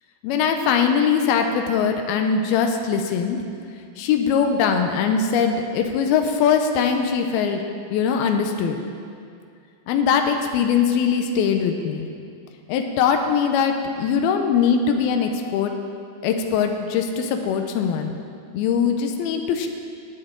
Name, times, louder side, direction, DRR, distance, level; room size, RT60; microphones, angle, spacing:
voice 1, 0.2-3.4 4.0-7.6 7.9-8.8 9.9-12.1 12.7-15.7 16.2-18.2 18.5-19.7, left 6 dB, 85° left, 5 dB, 2.6 m, -21 dB
16.5 x 8.7 x 3.8 m, 2.3 s
omnidirectional pair, 4.3 m